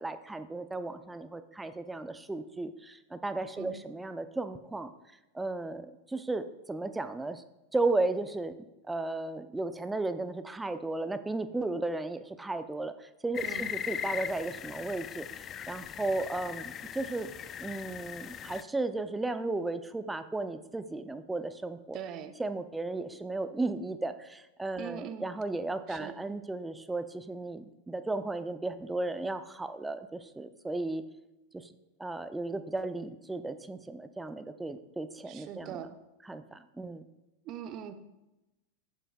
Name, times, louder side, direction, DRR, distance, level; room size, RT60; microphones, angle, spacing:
voice 1, 0.0-4.9 5.3-7.4 7.7-8.6 8.9-17.3 17.6-22.0 22.4-31.0 31.5-31.7 32.0-35.8 36.2-37.1, right 2 dB, 10° right, 11 dB, 0.7 m, -35 dB
sound 1, 13.3-18.6, left 9 dB, 25° left, 0.4 m, -39 dB
voice 2, 21.9-22.3 24.8-25.2 25.9-26.1 35.3-35.9 37.4-37.9, right 9 dB, 35° right, 9 dB, 1.0 m, -41 dB
15.0 x 11.0 x 2.4 m, 0.99 s
figure-of-eight pair, 90°, 0 cm